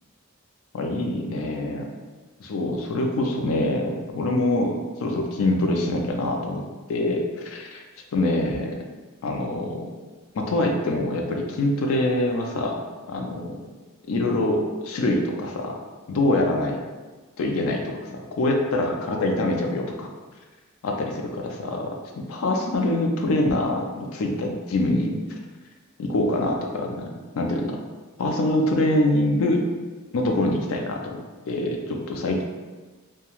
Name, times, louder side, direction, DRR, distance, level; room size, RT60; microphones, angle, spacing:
voice 1, 0.7-1.9 2.4-6.6 6.9-7.8 8.1-8.8 9.2-9.9 10.3-12.8 13.1-13.6 14.1-15.7 16.1-16.8 17.4-18.0 18.4-20.1 20.8-21.9 22.2-25.2 26.0-27.1 27.3-27.8 28.2-29.6 30.1-31.2 31.4-32.4, left 1 dB, 80° left, 2 dB, 0.4 m, -24 dB
2.3 x 2.2 x 3.0 m, 1.3 s
head